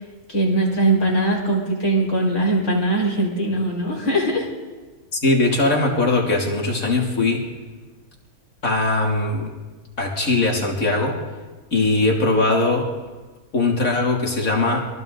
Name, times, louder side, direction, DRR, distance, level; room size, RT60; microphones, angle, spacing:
voice 1, 0.3-4.5, right 1 dB, 55° left, -2 dB, 5.1 m, -21 dB
voice 2, 5.2-7.4 8.6-9.5 10.0-11.2 11.7-12.9 13.5-14.9, left 2 dB, 70° left, -1 dB, 3.5 m, -20 dB
28.5 x 22.5 x 4.0 m, 1.3 s
omnidirectional pair, 1.5 m